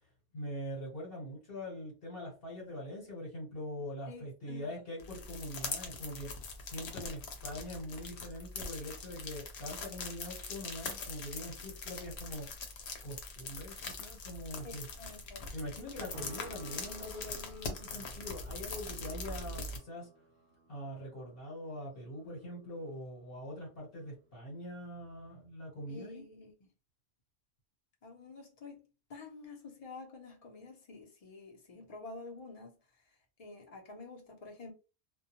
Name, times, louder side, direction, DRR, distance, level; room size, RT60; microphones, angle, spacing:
voice 1, 0.3-6.3 6.6-12.5 13.0-14.8 15.5-20.1 20.7-26.2, left 1 dB, 60° left, 1.2 m, -43 dB
voice 2, 4.1-4.8 14.6-15.5 25.9-26.5 28.0-28.8 29.1-32.8 33.1-34.7, left 3 dB, 40° left, 0.7 m, -49 dB
sound 1, 5.0-19.8, left 3 dB, 80° left, 0.9 m, -42 dB
sound 2, 16.1-24.5, right 2 dB, 65° right, 0.7 m, -56 dB
2.2 x 2.2 x 2.8 m
omnidirectional pair, 1.1 m